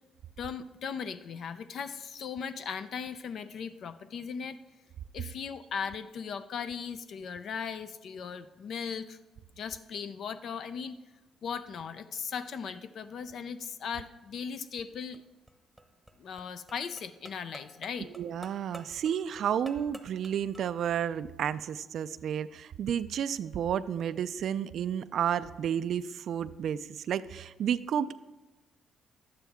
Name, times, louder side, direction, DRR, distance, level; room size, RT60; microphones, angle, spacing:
voice 1, 0.4-4.6 5.1-9.2 9.6-11.0 11.4-15.2 16.2-18.1, left 6 dB, 65° left, 11 dB, 0.4 m, -38 dB
sound 1, 15.0-21.0, right 1 dB, 5° right, 0.9 m, -51 dB
voice 2, 18.2-28.1, right 9 dB, 70° right, 13 dB, 0.3 m, -31 dB
11.5 x 8.8 x 3.5 m, 1.1 s
cardioid pair, 90°, 0 cm